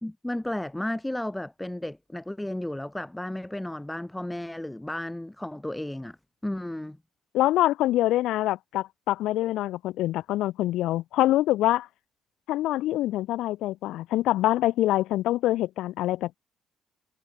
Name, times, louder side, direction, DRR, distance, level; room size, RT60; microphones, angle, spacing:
voice 1, 0.0-6.2 6.4-7.0, left 1 dB, 5° left, 1.1 m, -33 dB
voice 2, 7.3-11.9 12.5-16.4, left 15 dB, 65° left, 0.4 m, -25 dB
cardioid pair, 175°, 0 cm